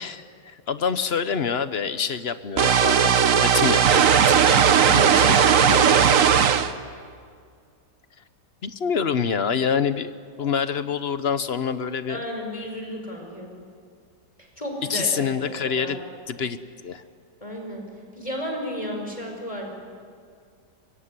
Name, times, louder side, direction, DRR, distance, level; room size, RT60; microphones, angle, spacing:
voice 1, 0.0-4.4 5.0-5.7 8.6-10.1 10.4-12.2 14.9-16.0 16.3-16.6 16.8-17.0, left 6 dB, 45° left, 12 dB, 1.0 m, -26 dB
sound 1, 2.6-6.7, right 8 dB, 55° right, 1.3 m, -17 dB
voice 2, 4.3-6.1 10.4-10.8 12.1-13.5 14.4-16.0 17.4-17.8 18.1-19.7, equal, 20° left, 2 dB, 5.1 m, -33 dB
24.0 x 23.5 x 9.8 m, 2.2 s
omnidirectional pair, 1.8 m